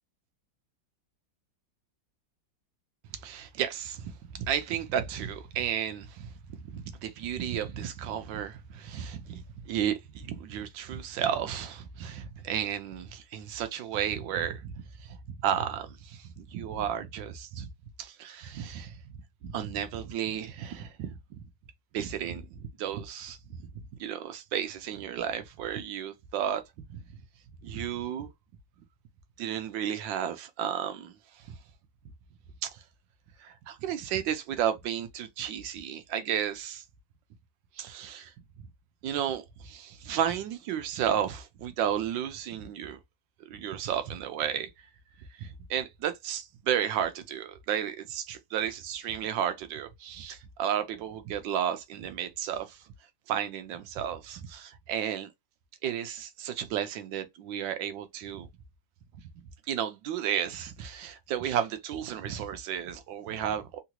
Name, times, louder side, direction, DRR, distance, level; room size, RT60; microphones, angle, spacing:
voice 1, 3.2-6.3 6.6-14.7 15.0-15.2 15.4-17.7 18.0-18.9 19.4-21.1 21.9-23.4 24.0-26.6 26.9-27.0 27.6-28.3 29.4-31.1 31.5-31.6 32.6-32.8 33.4-36.8 37.8-38.3 39.0-43.0 43.5-44.7 45.4-52.8 53.3-55.3 55.8-58.5 59.7-63.8, right 9 dB, 90° right, 1.3 m, -33 dB
3.7 x 2.9 x 2.3 m
omnidirectional pair, 2.0 m